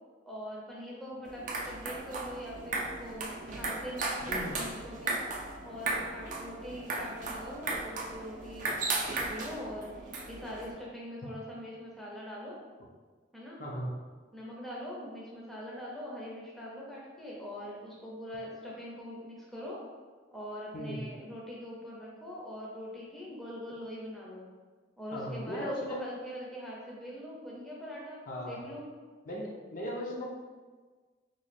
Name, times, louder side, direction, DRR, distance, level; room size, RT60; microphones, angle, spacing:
voice 1, 0.3-5.1 5.6-12.6 13.3-13.6 14.3-19.8 20.3-24.5 25.0-28.9, equal, ahead, -5 dB, 0.6 m, -42 dB
sound 1, 1.2-10.7, right 3 dB, 45° right, 0.4 m, -36 dB
voice 2, 4.3-4.6 13.6-13.9 20.7-21.0 25.1-26.0 28.3-28.7 29.3-30.2, equal, 45° left, -3 dB, 0.6 m, -37 dB
3.1 x 2.3 x 4.1 m, 1.4 s
head